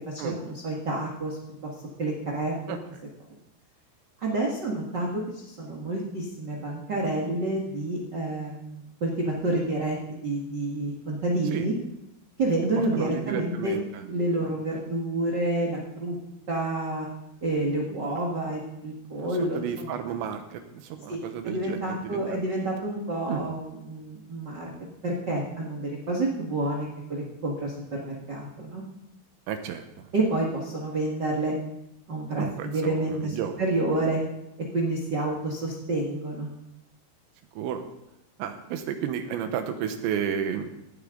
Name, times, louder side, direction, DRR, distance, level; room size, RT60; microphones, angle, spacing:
voice 1, 0.1-1.4 1.6-1.7 2.0-2.8 4.2-11.7 12.4-13.8 14.0-16.2 16.5-17.1 17.4-20.0 21.1-24.7 25.0-28.8 30.1-31.5 32.1-34.2 34.7-36.5, right 2 dB, 50° right, -2 dB, 1.3 m, -29 dB
voice 2, 12.9-14.0 14.4-14.6 19.1-19.3 19.5-22.2 23.3-23.4 29.5-30.1 32.4-33.5 37.6-37.8 38.4-40.7, right 8 dB, 80° right, 7 dB, 3.3 m, -32 dB
17.5 x 12.5 x 3.8 m, 0.87 s
omnidirectional pair, 5.2 m